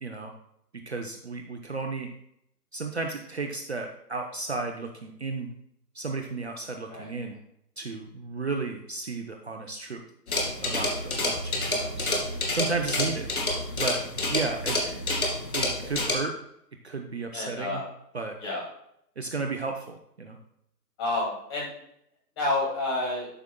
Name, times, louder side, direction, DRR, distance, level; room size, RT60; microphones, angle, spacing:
voice 1, 0.0-0.3 0.7-2.1 2.7-5.5 5.9-7.3 7.8-10.0 10.6-12.2 12.5-13.3 13.8-14.0 14.3-15.1 15.5-16.3 16.8-17.8 18.1-18.3 19.2-20.4, right 3 dB, 40° right, 3 dB, 0.7 m, -33 dB
sound 1, 10.3-16.1, left 2 dB, 60° left, 2.4 m, -28 dB
voice 2, 17.3-17.8 18.4-18.6 21.0-21.7 22.4-23.3, left 2 dB, 15° left, -4 dB, 2.2 m, -29 dB
12.5 x 6.1 x 2.2 m, 0.74 s
hypercardioid pair, 160°, 49 cm